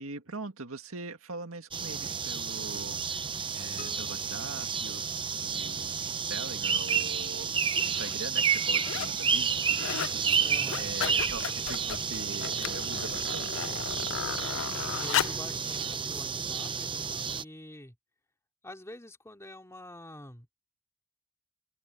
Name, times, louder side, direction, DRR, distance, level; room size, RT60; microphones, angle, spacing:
voice 1, 0.0-3.3 3.5-5.0 5.4-6.0 6.3-13.7, right 3 dB, 70° right, 2.1 m, -42 dB
sound 1, 1.7-17.4, right 6 dB, 25° right, 0.7 m, -31 dB
sound 2, 3.8-5.7, left 5 dB, 40° left, 5.1 m, -52 dB
sound 3, 6.9-7.0 7.7-8.1 8.5-9.2 9.5-10.2 10.5-15.5 16.2-16.3, left 11 dB, 60° left, 0.4 m, -35 dB
voice 2, 10.4-10.9 14.7-17.9 18.6-20.5, left 1 dB, 15° left, 3.0 m, -46 dB
open air
head